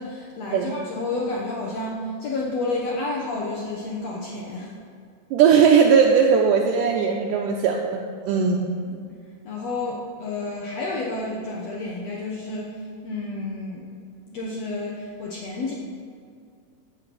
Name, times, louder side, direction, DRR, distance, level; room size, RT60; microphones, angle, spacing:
voice 1, 0.0-4.7 8.8-9.1 9.5-13.9 14.3-15.7, left 2 dB, 65° left, -3 dB, 1.8 m, -30 dB
voice 2, 5.3-8.7, right 6 dB, 80° right, 1 dB, 2.1 m, -18 dB
14.0 x 5.7 x 6.2 m, 2.3 s
omnidirectional pair, 4.0 m